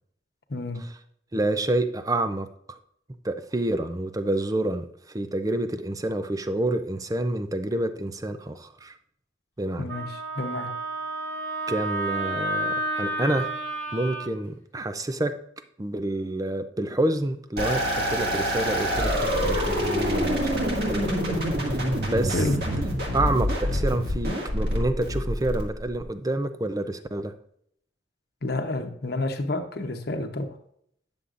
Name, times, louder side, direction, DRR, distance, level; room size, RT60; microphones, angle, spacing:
voice 1, 0.5-0.8 9.8-10.7 22.3-22.6 28.4-30.6, left 2 dB, 55° left, 5 dB, 0.9 m, -29 dB
voice 2, 1.3-2.8 3.2-9.0 9.6-9.9 11.7-13.5 13.9-15.3 15.8-21.8 22.1-22.8 23.1-27.3, right 1 dB, 20° right, 9 dB, 0.5 m, -28 dB
Wind instrument woodwind instrument, 9.9-14.3, right 2 dB, 15° left, 1.4 m, -30 dB
sound 1, 17.6-26.0, equal, 60° right, 2.0 m, -26 dB
9.6 x 6.9 x 2.5 m, 0.68 s
head